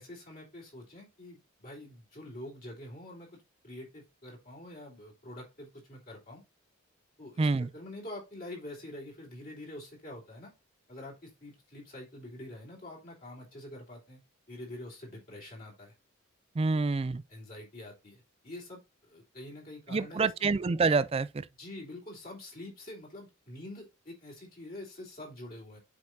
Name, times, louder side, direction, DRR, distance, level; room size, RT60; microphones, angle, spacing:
voice 1, 0.0-3.3 3.6-6.4 7.2-7.5 7.7-10.5 10.9-14.2 14.5-15.9 16.9-17.0 17.3-20.3 21.6-25.8, left 1 dB, 45° left, 3.3 m, -46 dB
voice 2, 7.4-7.7 16.6-17.2 19.9-21.5, right 4 dB, 25° right, 0.3 m, -27 dB
7.6 x 5.3 x 2.7 m
head